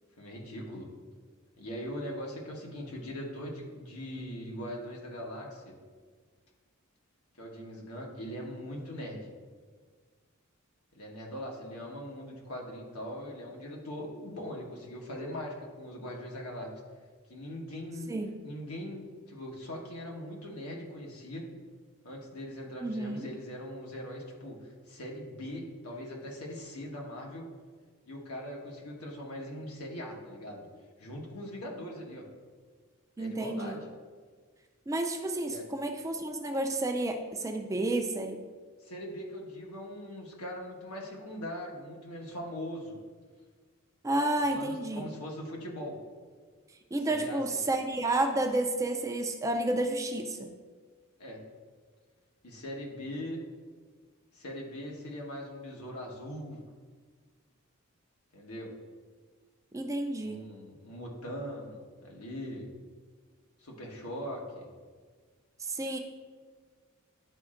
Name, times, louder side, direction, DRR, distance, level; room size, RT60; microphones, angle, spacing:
voice 1, 0.2-0.9 1.6-5.8 7.4-9.3 10.9-16.7 17.3-18.1 18.4-21.5 22.0-27.5 28.0-30.7 31.0-32.2 33.2-33.9 35.5-35.6 38.8-43.0 44.5-46.0 47.1-47.7 51.2-51.4 52.4-53.4 54.3-56.6 58.3-58.7 60.2-62.7 63.6-64.7, equal, 90° left, -1 dB, 1.3 m, -41 dB
voice 2, 22.8-23.3 33.2-33.8 34.9-38.4 44.0-45.0 46.9-50.5 59.7-60.4 65.6-66.0, right 2 dB, 15° right, 4 dB, 0.3 m, -31 dB
10.5 x 4.2 x 2.5 m, 1.5 s
head